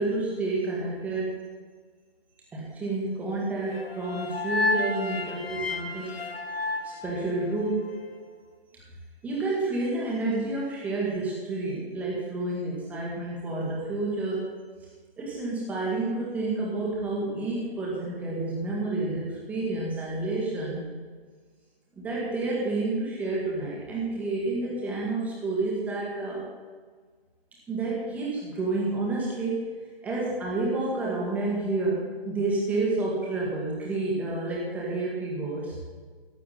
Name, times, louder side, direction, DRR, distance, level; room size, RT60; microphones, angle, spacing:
voice 1, 0.0-1.4 2.5-6.2 6.8-7.9 9.2-14.5 15.2-20.9 22.0-26.4 27.7-29.7 30.0-35.8, right 2 dB, 5° right, -5 dB, 1.8 m, -29 dB
sound 1, 3.7-7.9, left 2 dB, 75° left, 1.5 m, -31 dB
14.5 x 10.5 x 4.2 m, 1.5 s
figure-of-eight pair, 150°, 30 cm